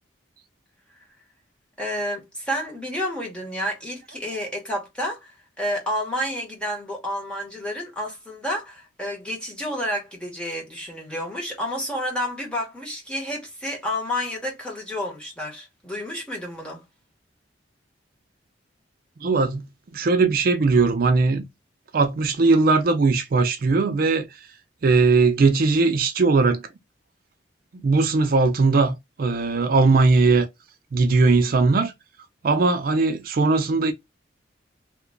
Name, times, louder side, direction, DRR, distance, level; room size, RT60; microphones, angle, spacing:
voice 1, 1.8-16.8, equal, 5° left, 1.1 m, -30 dB
voice 2, 19.2-19.6 19.9-21.4 21.9-24.3 24.8-26.6 27.8-30.5 30.9-31.9 32.4-33.9, right 3 dB, 50° right, 0.4 m, -19 dB
2.9 x 2.2 x 3.7 m
head